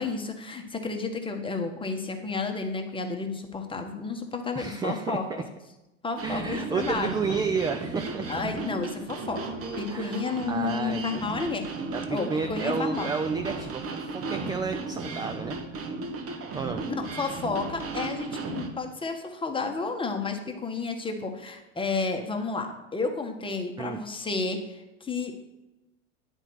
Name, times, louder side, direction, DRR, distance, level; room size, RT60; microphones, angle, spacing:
voice 1, 0.0-5.4 6.0-7.1 8.3-11.6 12.1-13.1 17.0-25.3, left 4 dB, 15° left, 4 dB, 1.2 m, -31 dB
voice 2, 4.5-5.2 6.2-8.3 9.9-11.4 11.9-15.6 16.5-16.8 23.8-24.0, right 5 dB, 10° right, 6 dB, 0.3 m, -31 dB
sound 1, 6.2-18.7, right 3 dB, 35° right, 1.3 m, -35 dB
9.6 x 4.6 x 6.1 m, 0.99 s
hypercardioid pair, 85°, 38 cm